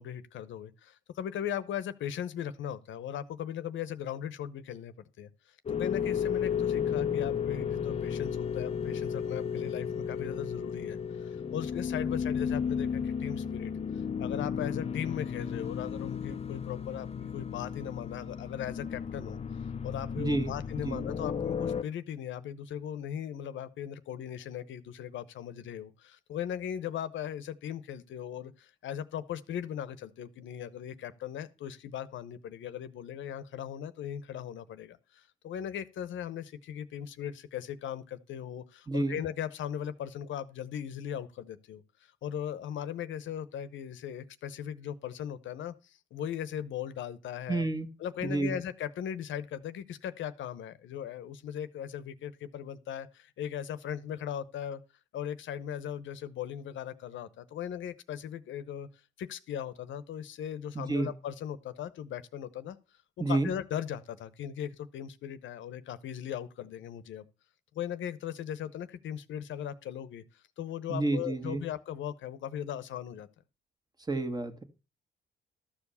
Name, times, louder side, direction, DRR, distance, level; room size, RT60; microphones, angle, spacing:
voice 1, 0.0-19.4 19.8-47.7 48.0-54.8 55.1-58.9 59.2-62.8 63.3-67.2 67.7-73.3, left 9 dB, 75° left, 0.9 m, -38 dB
sound 1, 5.7-21.8, left 7 dB, 30° left, 0.5 m, -33 dB
voice 2, 20.2-21.0 38.9-39.2 47.5-47.9 48.2-48.6 60.8-61.1 63.2-63.5 70.9-71.6 74.1-74.6, right 2 dB, 20° right, 1.6 m, -30 dB
13.0 x 4.9 x 6.9 m
cardioid pair, 90°, 20 cm